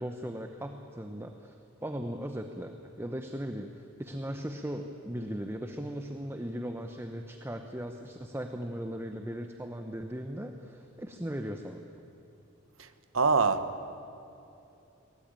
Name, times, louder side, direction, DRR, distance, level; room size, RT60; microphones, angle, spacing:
voice 1, 0.0-1.6 1.8-11.8, equal, 10° right, 0.9 m, -38 dB
voice 2, 13.1-14.0, right 4 dB, 85° right, 1.3 m, -26 dB
23.0 x 19.0 x 9.0 m
head